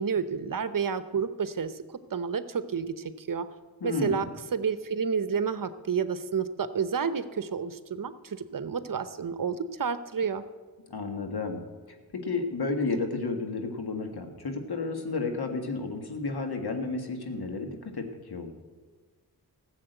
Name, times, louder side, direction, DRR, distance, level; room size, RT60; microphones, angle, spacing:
voice 1, 0.0-1.8 2.1-3.5 3.8-4.2 4.5-10.4, right 6 dB, 55° right, 13 dB, 0.8 m, -30 dB
voice 2, 3.8-4.3 10.9-11.6 12.1-18.5, left 3 dB, 75° left, 5 dB, 1.8 m, -32 dB
14.5 x 7.3 x 8.0 m, 1.3 s
cardioid pair, 55°, 39 cm